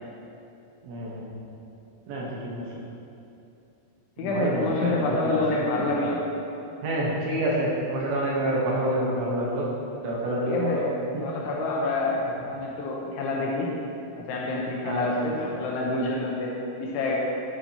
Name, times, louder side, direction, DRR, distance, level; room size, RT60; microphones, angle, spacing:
voice 1, 0.8-1.4 2.1-2.7 4.2-5.4 5.7-5.8 6.8-9.7 10.0-10.8 11.1-11.2 14.8-15.3, right 1 dB, 75° right, -5 dB, 3.1 m, -28 dB
voice 2, 4.2-6.2 10.4-10.8 11.1-13.7 14.1-17.2, left 2 dB, 80° left, -3 dB, 2.9 m, -27 dB
10.0 x 7.4 x 2.8 m, 2.7 s
omnidirectional pair, 5.8 m